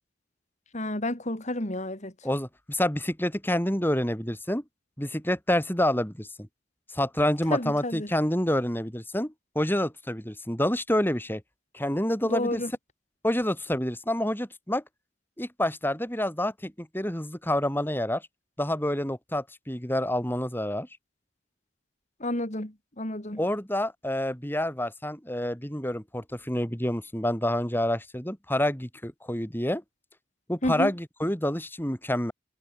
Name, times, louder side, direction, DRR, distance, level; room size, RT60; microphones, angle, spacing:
voice 1, 0.7-2.1 7.5-8.1 12.2-12.7 22.2-23.4 30.6-30.9, left 1 dB, 40° left, 3.5 m, -30 dB
voice 2, 2.2-4.6 5.0-6.5 6.9-11.4 11.7-12.6 13.2-14.8 15.4-18.3 18.6-20.9 23.4-29.8 30.5-32.3, left 1 dB, 10° left, 6.7 m, -28 dB
head